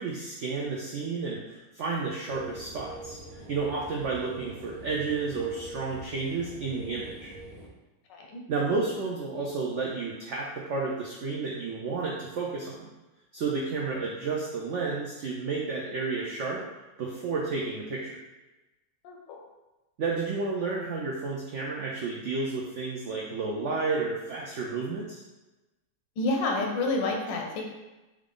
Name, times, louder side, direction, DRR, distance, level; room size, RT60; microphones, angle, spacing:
voice 1, 0.0-3.2 3.5-7.3 8.5-12.9 13.3-16.6 17.0-18.2 20.0-25.2, right 4 dB, 85° right, -3 dB, 0.6 m, -31 dB
sound 1, 2.3-7.7, right 1 dB, 50° right, 0.8 m, -44 dB
voice 2, 8.1-8.4 19.0-19.4 26.2-27.6, left 2 dB, 85° left, 1 dB, 1.4 m, -29 dB
4.3 x 2.5 x 3.5 m, 1.1 s
omnidirectional pair, 1.9 m